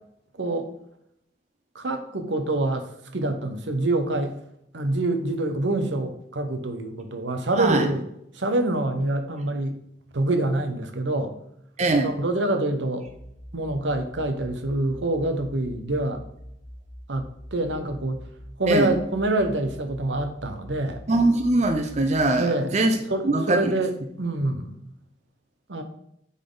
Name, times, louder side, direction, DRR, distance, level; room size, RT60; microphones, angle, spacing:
voice 1, 0.4-0.7 1.7-4.4 4.7-8.1 8.3-9.8 10.1-11.3 12.0-13.1 13.5-16.2 17.1-18.2 18.6-21.0 22.4-22.7 23.1-24.8 25.7-25.8, right 2 dB, 80° right, 6 dB, 1.0 m, -26 dB
voice 2, 11.8-12.1 18.7-18.9 21.1-23.0 23.2-23.7, right 2 dB, 40° right, 5 dB, 0.6 m, -21 dB
sound 1, 13.1-22.3, equal, 10° left, 1.5 m, -44 dB
9.7 x 4.1 x 3.9 m, 0.76 s
head